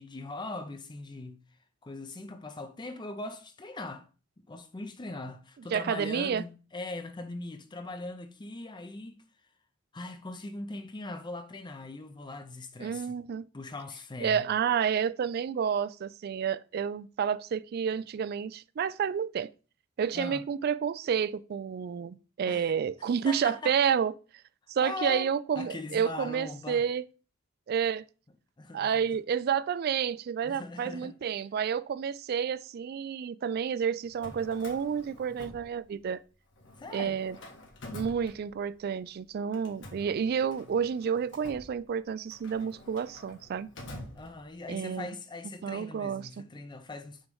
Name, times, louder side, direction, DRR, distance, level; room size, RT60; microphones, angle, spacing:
voice 1, 0.0-1.4 1.8-4.0 4.5-9.2 9.9-13.2 13.5-14.5 20.1-20.4 22.5-22.7 23.2-23.8 24.8-25.3 25.6-26.8 28.6-29.0 30.4-31.1 36.8-37.2 44.1-47.3, left 2 dB, 25° left, 0.5 m, -40 dB
voice 2, 5.7-6.4 12.8-13.5 14.2-19.5 20.0-24.1 24.7-27.0 27.7-28.1 28.7-36.2 36.9-37.4 37.9-43.7 44.7-45.1 45.6-46.4, right 7 dB, 50° right, 0.3 m, -30 dB
Drawer open or close, 34.0-36.2 36.5-38.9 39.5-44.8, left 1 dB, 65° left, 1.5 m, -48 dB
6.3 x 3.1 x 5.3 m
head